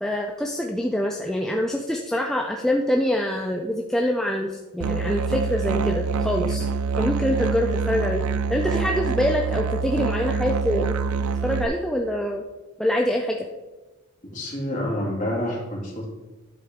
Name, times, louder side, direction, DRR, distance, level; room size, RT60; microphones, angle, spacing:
voice 1, 0.0-6.6 7.0-8.2 8.5-10.9 11.4-12.4 12.8-13.4, left 1 dB, ahead, 0 dB, 0.3 m, -25 dB
Musical instrument, 4.8-11.7, right 5 dB, 85° right, 0.4 m, -25 dB
voice 2, 14.3-16.1, left 1 dB, 35° left, -4 dB, 2.2 m, -28 dB
11.0 x 3.8 x 3.5 m, 1.2 s
head